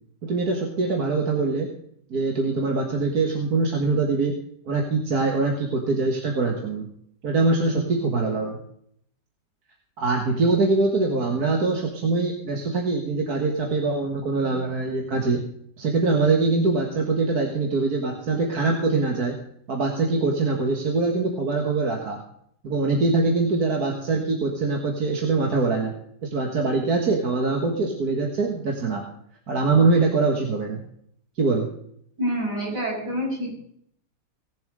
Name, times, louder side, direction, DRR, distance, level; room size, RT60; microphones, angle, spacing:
voice 1, 0.2-1.7 2.1-4.3 4.7-6.9 7.2-8.6 10.0-15.4 15.8-19.3 19.7-22.2 22.6-25.9 26.2-29.1 29.5-30.8 31.4-31.7, right 3 dB, 65° right, 1 dB, 2.1 m, -23 dB
voice 2, 32.2-33.6, equal, 80° right, -4 dB, 6.6 m, -27 dB
18.0 x 7.3 x 5.1 m, 0.67 s
omnidirectional pair, 1.8 m